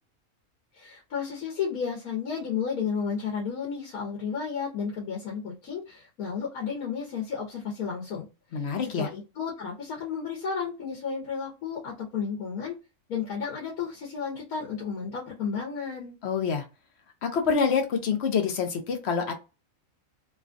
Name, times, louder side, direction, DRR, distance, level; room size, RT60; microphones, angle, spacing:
voice 1, 0.7-8.2 8.5-12.7 13.1-16.2, left 6 dB, 90° left, -2 dB, 1.4 m, -32 dB
voice 2, 8.5-9.1 16.2-16.6 17.2-19.3, left 6 dB, 60° left, 5 dB, 0.8 m, -26 dB
3.2 x 2.3 x 2.5 m, 0.29 s
omnidirectional pair, 1.5 m